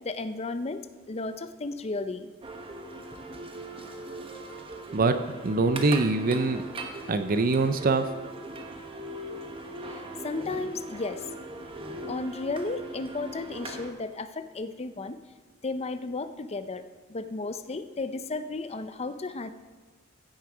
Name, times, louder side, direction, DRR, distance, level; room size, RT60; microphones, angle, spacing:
voice 1, 0.0-0.8 1.1-2.3 10.2-11.2 12.1-15.2 15.6-16.8 17.1-19.5, left 3 dB, 30° left, 11 dB, 0.6 m, -33 dB
sound 1, 2.4-13.9, right 1 dB, 25° right, 1.1 m, -40 dB
voice 2, 5.4-6.6 7.1-8.1, right 3 dB, 45° right, 9 dB, 0.6 m, -23 dB
15.0 x 6.4 x 5.0 m, 1.4 s
head